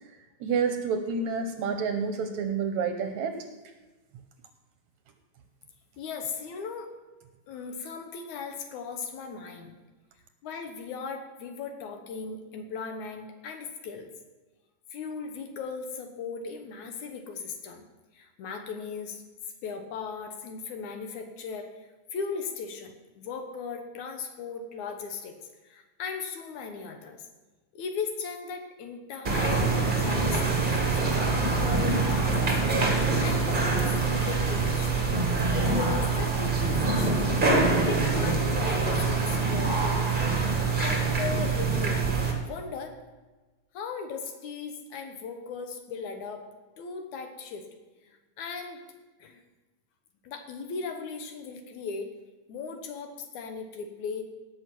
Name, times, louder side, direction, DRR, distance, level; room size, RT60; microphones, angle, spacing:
voice 1, 0.4-3.4, right 5 dB, 70° right, 7 dB, 1.9 m, -29 dB
voice 2, 6.0-6.9 7.5-9.8 10.4-14.1 14.9-17.8 18.1-19.2 19.6-25.4 25.6-27.2 27.7-29.7 30.0-32.8 33.2-35.1 35.5-40.0 40.8-43.0 43.7-46.4 46.8-47.6 48.0-48.8 49.2-49.4 50.2-52.1 52.5-54.2, left 5 dB, 70° left, 5 dB, 2.4 m, -37 dB
sound 1, 29.2-42.3, right 3 dB, 25° right, 1.1 m, -25 dB
17.5 x 6.4 x 6.0 m, 1.2 s
omnidirectional pair, 3.8 m